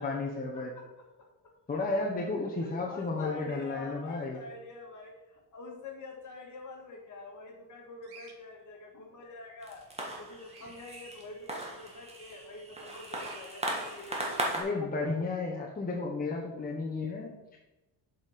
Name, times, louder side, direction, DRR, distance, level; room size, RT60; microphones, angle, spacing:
voice 1, 0.0-0.7 1.7-4.4 14.5-17.6, left 3 dB, 20° left, -2 dB, 1.1 m, -33 dB
voice 2, 0.5-1.5 2.1-9.9 10.2-15.1, left 3 dB, 45° left, 1 dB, 2.0 m, -47 dB
Bird vocalization bird call bird song, 8.0-8.4 10.4-10.8 13.1-13.4, right 5 dB, 65° right, 1.5 m, -52 dB
sound 1, 9.6-14.6, right 1 dB, 15° right, 1.7 m, -37 dB
7.1 x 5.6 x 5.2 m, 0.98 s
cardioid pair, 130°, 42 cm